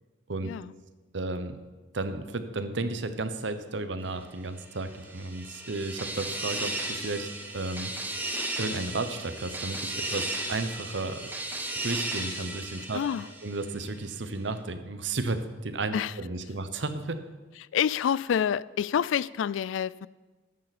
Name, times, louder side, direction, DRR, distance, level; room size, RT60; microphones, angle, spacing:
voice 1, 1.1-1.6 1.9-7.9 8.6-11.2 11.8-13.0 13.4-17.2, right 2 dB, 70° right, 0.9 m, -33 dB
sound 1, 4.8-13.9, right 1 dB, 10° right, 1.2 m, -35 dB
voice 2, 12.9-13.3 15.9-16.1 17.7-20.1, left 8 dB, 85° left, 0.3 m, -27 dB
13.5 x 10.5 x 4.2 m
head